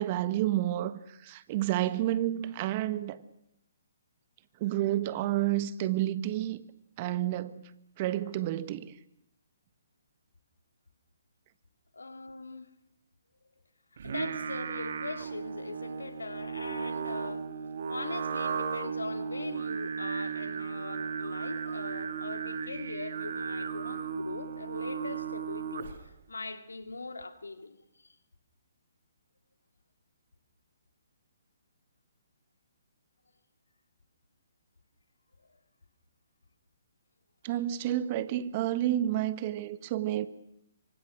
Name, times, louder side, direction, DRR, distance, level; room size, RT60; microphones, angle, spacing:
voice 1, 0.0-3.2 4.6-6.6 7.0-7.6 8.0-8.9 37.4-40.3, right 13 dB, 35° right, 1.4 m, -30 dB
voice 2, 11.9-12.7 13.4-13.5 14.0-17.5 17.9-28.2 35.4-35.6, left 3 dB, 80° left, 2.5 m, -41 dB
Singing, 14.0-26.1, right 6 dB, 55° right, 2.1 m, -35 dB
26.5 x 24.5 x 6.4 m
figure-of-eight pair, 130°, 0 cm